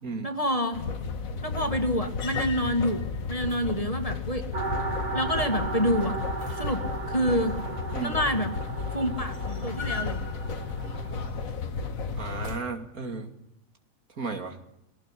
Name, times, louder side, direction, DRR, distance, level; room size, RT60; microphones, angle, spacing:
voice 1, 0.2-0.9 1.4-4.5 5.1-6.2 6.5-7.6 8.0-8.5 8.9-10.2, equal, 25° left, 6 dB, 2.3 m, -28 dB
sound 1, 0.7-12.6, left 5 dB, 75° left, 2.0 m, -33 dB
sound 2, 4.5-11.3, right 3 dB, 55° right, 2.7 m, -35 dB
voice 2, 12.1-13.3 14.2-14.6, right 4 dB, 80° right, 6 dB, 3.0 m, -34 dB
22.5 x 17.5 x 10.0 m, 0.83 s
omnidirectional pair, 1.5 m